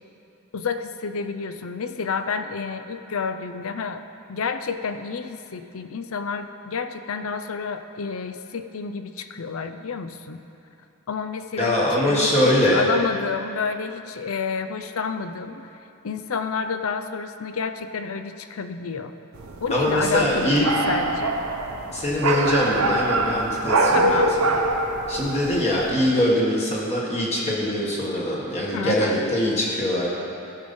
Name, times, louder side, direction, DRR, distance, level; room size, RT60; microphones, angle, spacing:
voice 1, 0.5-4.0 4.3-10.4 11.1-15.6 16.0-19.1 19.6-21.3 23.9-24.4 28.7-29.2, left 5 dB, 65° left, 9 dB, 0.5 m, -29 dB
voice 2, 11.6-12.8 19.7-20.7 21.9-24.2 25.1-30.1, left 1 dB, 30° left, -5 dB, 1.4 m, -22 dB
sound 1, 19.3-25.9, right 2 dB, 70° right, 0.9 m, -24 dB
16.0 x 5.4 x 5.3 m, 2.7 s
head